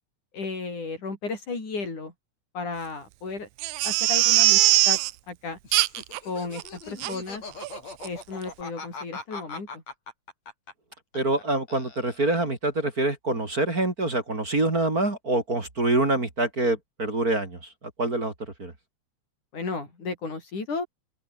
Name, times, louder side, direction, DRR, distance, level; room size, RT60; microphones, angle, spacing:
voice 1, 0.3-2.1 2.5-3.5 3.8-5.0 5.3-5.6 6.2-7.4 8.0-9.8 19.5-20.9, left 4 dB, 80° left, 8.5 m, -34 dB
Crying sobbing, 3.6-5.1 5.7-6.2 6.6-6.7 7.0-7.1 7.6-7.8 8.0-8.1, right 17 dB, 80° right, 2.0 m, -21 dB
Laughter, 5.6-11.4 11.7-12.5, left 4 dB, 60° left, 7.0 m, -41 dB
voice 2, 11.1-17.6 18.0-18.3 18.6-18.7, right 2 dB, 30° right, 4.0 m, -25 dB
open air
omnidirectional pair, 3.4 m